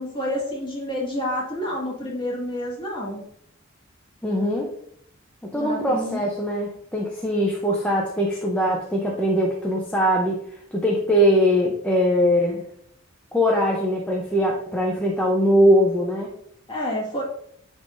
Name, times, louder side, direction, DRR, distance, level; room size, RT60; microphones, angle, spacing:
voice 1, 0.0-3.2 5.5-6.3 16.7-17.2, left 1 dB, 25° left, -4 dB, 1.8 m, -29 dB
voice 2, 4.2-4.7 5.4-12.6 13.3-16.3, equal, 5° left, -3 dB, 0.6 m, -21 dB
10.0 x 3.6 x 2.6 m, 0.69 s
head